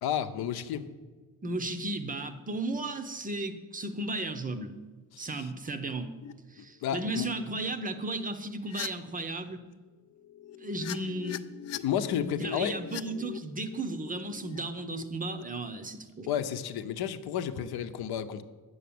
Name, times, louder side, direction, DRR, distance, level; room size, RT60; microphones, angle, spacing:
voice 1, 0.0-0.9 5.1-5.5 6.6-7.3 11.8-12.8 16.3-18.4, left 9 dB, 75° left, 10 dB, 0.8 m, -32 dB
voice 2, 1.4-4.8 5.2-6.1 6.5-9.6 10.6-11.4 12.2-16.3 17.6-17.7, right 2 dB, 20° right, 9 dB, 0.6 m, -35 dB
sound 1, 6.2-6.3 7.0-7.2 8.6-8.9 10.2-15.4, left 8 dB, 45° left, 0.4 m, -42 dB
9.3 x 7.0 x 8.5 m, 1.3 s
cardioid pair, 170°, 38 cm